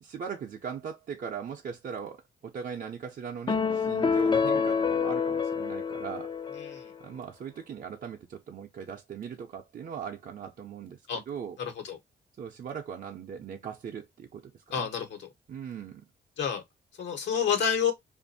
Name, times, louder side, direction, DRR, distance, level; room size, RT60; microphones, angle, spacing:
voice 1, 0.0-6.3 7.0-11.6 12.4-14.9 15.5-16.0, right 7 dB, 50° right, 0.6 m, -39 dB
sound 1, 3.5-7.0, left 5 dB, 25° left, 0.4 m, -27 dB
voice 2, 6.6-6.9 11.1-11.2 11.6-12.0 14.7-15.3 16.4-16.6 17.0-17.9, left 7 dB, 85° left, 1.2 m, -29 dB
2.5 x 2.5 x 2.6 m
cardioid pair, 100°, 18 cm